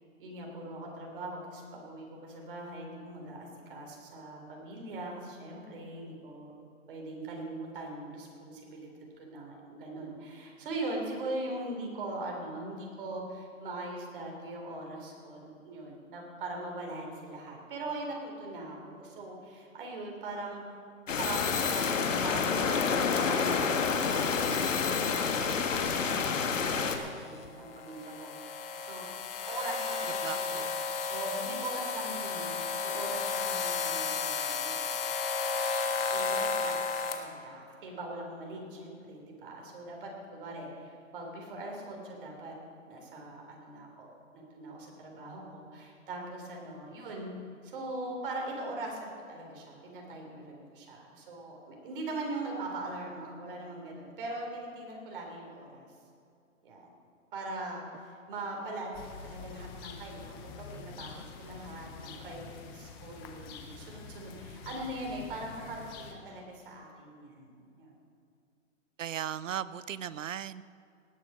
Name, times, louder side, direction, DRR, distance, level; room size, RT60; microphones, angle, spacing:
voice 1, 0.2-6.5 6.9-8.9 9.3-20.6 21.2-29.1 29.4-34.8 36.1-42.6 42.8-55.9 56.6-56.9 57.3-68.0, right 2 dB, 40° right, 0 dB, 3.7 m, -41 dB
sound 1, 21.1-27.0, left 5 dB, 75° left, 1.6 m, -28 dB
sound 2, 21.2-37.2, left 5 dB, 45° left, 1.6 m, -35 dB
voice 2, 30.2-30.7 69.0-70.6, right 10 dB, 75° right, 16 dB, 0.7 m, -37 dB
sound 3, 58.9-66.1, left 5 dB, 20° left, 0.8 m, -46 dB
18.5 x 7.6 x 6.3 m, 2.4 s
hypercardioid pair, 155°, 39 cm